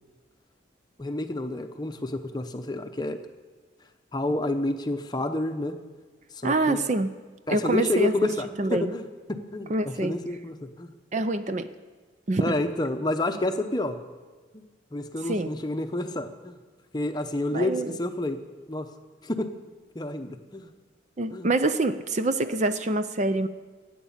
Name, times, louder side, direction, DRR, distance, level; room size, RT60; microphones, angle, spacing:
voice 1, 1.0-3.2 4.1-5.7 6.3-6.8 7.5-10.9 12.4-14.0 14.5-14.6 14.9-16.6 16.9-18.4 18.7-18.9 19.2-19.5 19.9-20.7 21.3-21.5, left 2 dB, 20° left, 7 dB, 0.8 m, -29 dB
voice 2, 6.4-7.1 7.5-8.3 8.6-8.9 9.7-10.2 11.1-11.7 12.3-12.6 15.3-15.5 17.5-18.0 21.2-23.5, right 2 dB, 40° right, 11 dB, 0.5 m, -26 dB
15.5 x 9.4 x 7.3 m, 1.4 s
head